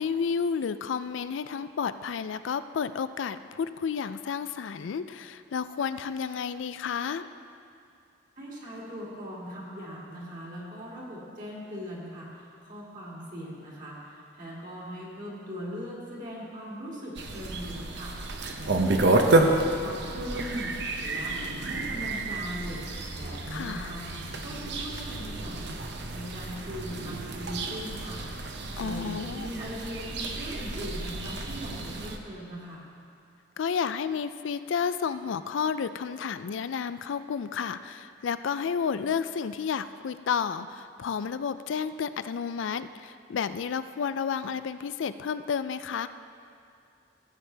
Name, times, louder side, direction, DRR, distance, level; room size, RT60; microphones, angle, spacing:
voice 1, 0.0-7.3 23.5-23.9 28.8-29.5 33.6-46.1, left 6 dB, 75° left, 13 dB, 0.4 m, -31 dB
voice 2, 8.4-19.5 19.8-20.7 21.0-21.4 21.6-22.8 23.1-24.1 24.4-25.8 26.1-28.2 28.8-32.8, equal, 40° right, -5 dB, 2.4 m, -40 dB
sound 1, 17.2-32.2, right 2 dB, 60° right, 0.7 m, -30 dB
15.5 x 8.2 x 3.4 m, 2.4 s
head